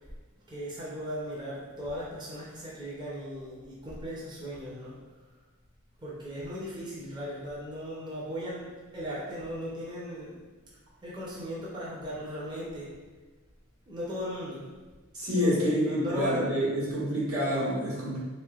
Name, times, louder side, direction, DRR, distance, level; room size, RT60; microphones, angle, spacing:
voice 1, 0.5-4.9 6.0-10.4 11.0-12.9 13.9-14.7 15.3-16.7, equal, 20° right, -7 dB, 0.6 m, -37 dB
voice 2, 15.1-18.2, equal, 80° right, -8 dB, 1.3 m, -27 dB
3.1 x 2.9 x 2.3 m, 1.3 s
head